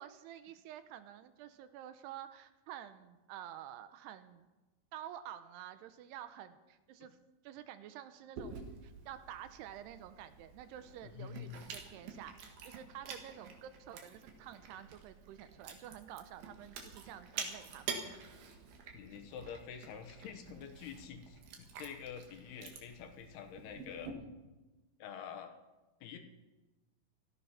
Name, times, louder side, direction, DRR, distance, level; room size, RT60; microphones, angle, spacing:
voice 1, 0.0-4.5 4.9-7.2 7.4-18.4, right 11 dB, 80° right, 11 dB, 2.7 m, -50 dB
Chewing mastication, 8.4-24.1, right 5 dB, 65° right, 3.4 m, -48 dB
voice 2, 11.0-11.6 18.9-24.1 25.0-25.6 26.0-26.2, left 8 dB, 70° left, 5 dB, 3.1 m, -47 dB
16.5 x 13.5 x 5.8 m, 1.1 s
omnidirectional pair, 4.9 m